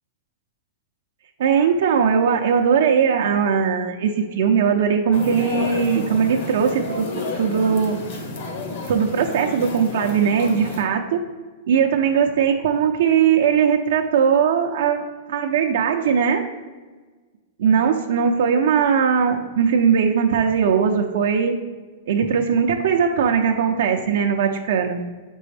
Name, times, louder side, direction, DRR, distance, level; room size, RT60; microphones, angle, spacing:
voice 1, 1.4-7.1 7.3-8.0 8.9-11.2 11.7-15.0 15.3-16.4 17.6-21.6 22.1-25.0, right 7 dB, 70° right, 3 dB, 0.6 m, -19 dB
sound 1, 5.1-10.8, left 2 dB, 60° left, 1.5 m, -31 dB
6.8 x 5.3 x 3.3 m, 1.3 s
supercardioid pair, 155°, 0 cm